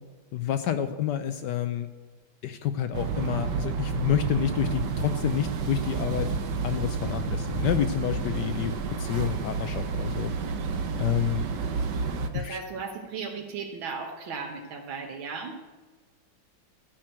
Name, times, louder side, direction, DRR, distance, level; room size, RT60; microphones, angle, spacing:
voice 1, 0.3-1.9 2.4-6.3 6.6-10.3 11.0-11.4 12.3-12.6, left 10 dB, 70° left, 10 dB, 1.2 m, -29 dB
sound 1, 2.9-12.3, right 5 dB, 65° right, 1.5 m, -30 dB
voice 2, 12.3-15.6, right 5 dB, 85° right, 1 dB, 2.0 m, -36 dB
13.0 x 6.0 x 8.9 m, 1.3 s
omnidirectional pair, 2.1 m